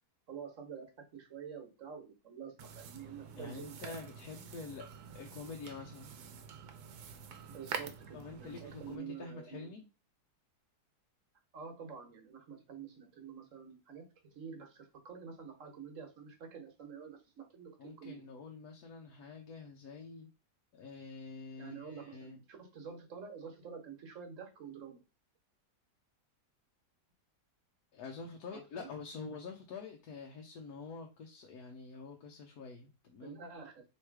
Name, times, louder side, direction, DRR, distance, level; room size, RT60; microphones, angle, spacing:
voice 1, 0.3-0.9 1.1-4.0 7.5-9.7 11.5-14.0 14.3-17.7 18.0-18.3 21.6-25.0 28.5-28.9 33.2-33.8, right 6 dB, 55° right, 3 dB, 1.4 m, -48 dB
sound 1, 2.6-9.0, right 7 dB, 75° right, 1.2 m, -47 dB
voice 2, 3.4-6.1 8.1-9.9 17.8-20.3 20.7-22.4 27.9-33.4, left 4 dB, 70° left, 2 dB, 1.1 m, -47 dB
3.2 x 3.1 x 4.6 m, 0.29 s
omnidirectional pair, 1.7 m